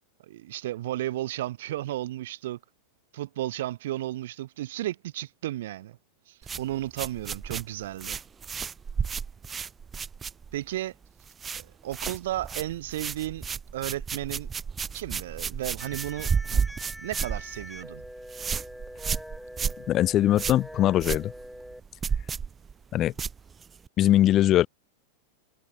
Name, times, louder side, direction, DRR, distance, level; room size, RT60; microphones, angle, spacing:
voice 1, 0.2-2.6 3.1-6.0 6.3-8.2 10.5-10.9 11.5-13.4 13.7-14.5 14.9-16.6 17.0-18.0, right 14 dB, 65° right, 1.6 m, -33 dB
sound 1, 6.4-10.8 11.0-11.6 11.9-23.9, right 6 dB, 20° right, 1.3 m, -32 dB
sound 2, 15.8-21.8, equal, ahead, 1.3 m, -44 dB
voice 2, 19.9-21.3 22.9-23.1 24.0-24.7, left 13 dB, 35° left, 0.6 m, -21 dB
figure-of-eight pair, 95°, 0 cm